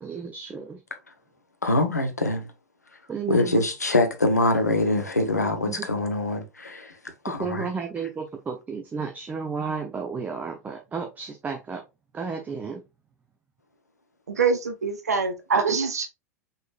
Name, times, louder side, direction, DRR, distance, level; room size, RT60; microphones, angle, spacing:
voice 1, 0.0-0.8 3.1-3.6 5.7-5.9 7.3-11.8 12.1-12.8, right 5 dB, 20° right, 0.8 m, -33 dB
voice 2, 1.6-2.5 3.3-7.0 7.2-7.7, left 2 dB, 85° left, 0.9 m, -24 dB
voice 3, 14.3-16.1, right 5 dB, 75° right, 0.7 m, -24 dB
5.4 x 3.9 x 2.4 m
figure-of-eight pair, 85°, 9 cm